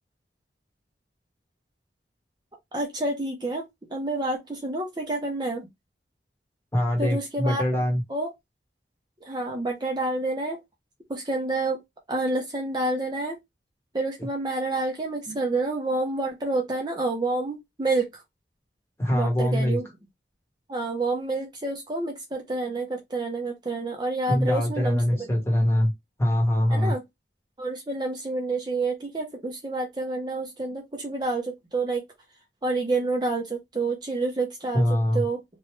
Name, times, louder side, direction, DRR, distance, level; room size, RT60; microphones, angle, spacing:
voice 1, 2.7-3.6 3.9-5.7 7.0-7.6 8.1-8.3 9.2-10.6 11.1-11.8 12.1-13.4 13.9-18.2 19.1-19.9 20.7-25.4 26.7-27.0 27.6-32.0 32.6-34.8 35.1-35.4, right 2 dB, 25° right, 0.7 m, -28 dB
voice 2, 6.7-8.0 15.3-15.4 19.0-19.8 24.3-25.9 26.2-26.9 34.7-35.2, equal, 15° left, 1.1 m, -23 dB
3.1 x 2.3 x 3.1 m
head